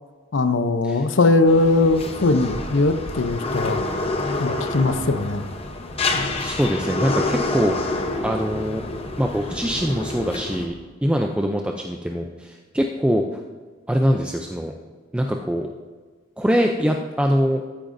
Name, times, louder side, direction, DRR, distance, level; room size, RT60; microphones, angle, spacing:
voice 1, 0.3-3.8 4.4-5.4, left 2 dB, 75° left, 10 dB, 0.6 m, -20 dB
sound 1, 1.5-10.7, left 2 dB, 30° left, 0.8 m, -28 dB
voice 2, 6.4-8.8 9.2-10.7 11.0-13.2 13.9-14.7 15.1-15.7 16.4-17.6, equal, 5° right, 2 dB, 0.4 m, -23 dB
14.0 x 8.7 x 2.6 m, 1.4 s
head